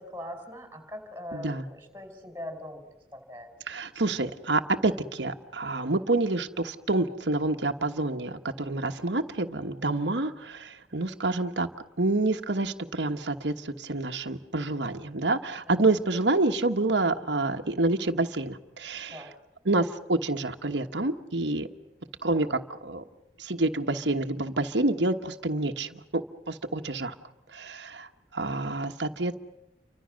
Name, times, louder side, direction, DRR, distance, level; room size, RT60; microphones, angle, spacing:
voice 1, 0.0-2.8 3.1-3.5 15.7-15.9 19.1-19.3, left 1 dB, 15° right, 6 dB, 5.1 m, -41 dB
voice 2, 1.3-1.6 3.7-11.7 12.0-19.3 19.6-21.7 22.2-23.0 23.4-27.1 27.5-29.4, right 2 dB, 85° right, 5 dB, 1.3 m, -28 dB
30.0 x 25.0 x 6.4 m, 0.92 s
head